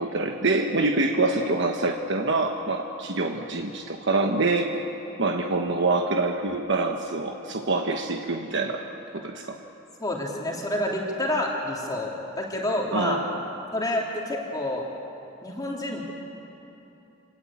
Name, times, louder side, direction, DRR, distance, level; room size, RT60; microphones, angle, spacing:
voice 1, 0.0-4.7 5.2-8.8 9.1-9.6 12.9-13.3, right 3 dB, 65° right, 3 dB, 1.3 m, -25 dB
voice 2, 10.0-13.2 13.7-14.9 15.4-16.0, left 1 dB, 20° left, -2 dB, 2.9 m, -28 dB
26.5 x 19.0 x 8.5 m, 2.9 s
head